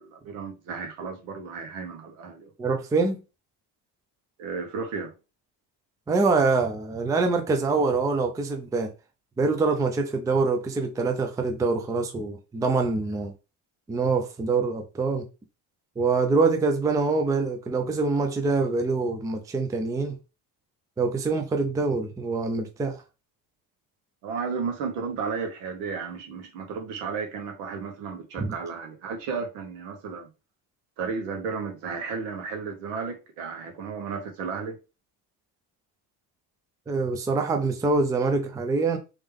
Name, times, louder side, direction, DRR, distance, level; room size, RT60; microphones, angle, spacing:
voice 1, 0.0-2.5 4.4-5.1 24.2-30.3 31.0-34.8, right 5 dB, 85° right, 1.5 m, -33 dB
voice 2, 2.6-3.2 6.1-8.9 9.4-13.3 13.9-15.2 16.0-20.2 21.0-23.0 28.4-28.5 36.9-39.0, right 3 dB, 10° right, 0.4 m, -25 dB
3.5 x 3.2 x 3.5 m
cardioid pair, 140°, 44 cm